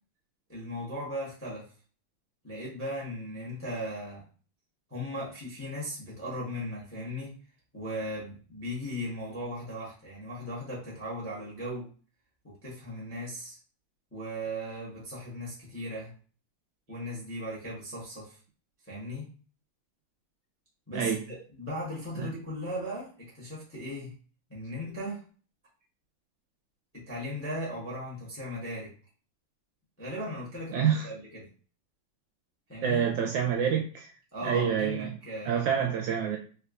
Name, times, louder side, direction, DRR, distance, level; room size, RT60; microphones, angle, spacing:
voice 1, 0.5-1.7 2.4-4.2 4.9-7.4 7.7-11.9 12.4-13.6 14.1-16.1 16.9-18.4 18.8-19.3 20.9-23.1 23.3-24.2 24.5-25.2 26.9-28.9 30.0-31.5 32.7-33.1 34.3-35.7, equal, 15° left, -5 dB, 0.5 m, -37 dB
voice 2, 20.9-21.2 22.2-22.3 30.7-31.1 32.8-34.1 34.4-35.1 35.5-36.4, right 8 dB, 75° right, 1 dB, 1.1 m, -27 dB
3.6 x 2.8 x 2.4 m, 0.40 s
omnidirectional pair, 2.3 m